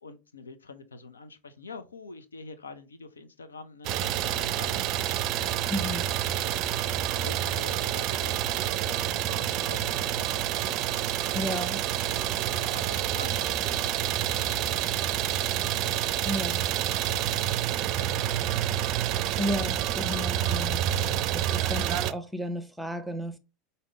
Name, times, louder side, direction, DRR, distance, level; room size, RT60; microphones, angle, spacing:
voice 1, 0.0-6.0 7.2-11.5 12.0-16.2 16.5-16.7 16.9-19.2 19.6-19.7 20.0-20.5 21.1-21.2, left 4 dB, 90° left, 0.6 m, -47 dB
Idling, 3.8-22.1, right 11 dB, 50° right, 0.4 m, -28 dB
voice 2, 5.7-6.0 11.3-11.8 16.2-16.6 19.4-20.8 21.3-23.4, equal, ahead, 0.8 m, -33 dB
5.1 x 2.8 x 3.1 m
hypercardioid pair, 85°, 0 cm